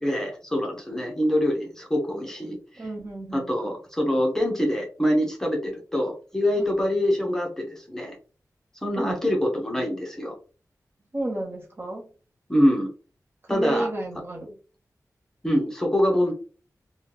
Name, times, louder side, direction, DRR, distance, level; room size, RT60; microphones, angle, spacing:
voice 1, 0.0-2.8 3.3-8.2 8.8-10.3 12.5-12.9 13.5-13.9 15.4-16.3, equal, 10° left, 0 dB, 0.9 m, -25 dB
voice 2, 2.8-3.5 6.6-6.7 9.0-9.3 11.1-12.1 13.4-14.5, right 2 dB, 40° right, 0 dB, 1.0 m, -32 dB
3.5 x 2.3 x 3.0 m, 0.36 s
wide cardioid pair, 100°, 6 cm